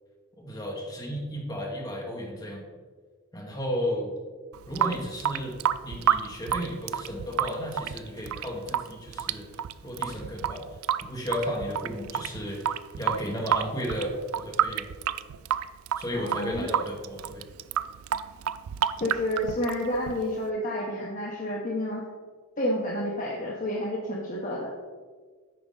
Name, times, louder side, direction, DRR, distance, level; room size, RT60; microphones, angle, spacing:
voice 1, 0.4-2.7 3.3-4.1 4.7-9.5 9.8-10.6 11.0-14.9 16.0-17.5, equal, 20° left, -2 dB, 1.4 m, -33 dB
Water tap faucet / Sink (filling or washing) / Drip, 4.5-20.5, right 9 dB, 90° right, 0.3 m, -30 dB
voice 2, 16.1-16.7 19.0-22.1 22.6-24.7, left 1 dB, 40° left, -3 dB, 0.9 m, -30 dB
9.2 x 5.0 x 3.8 m, 1.5 s
head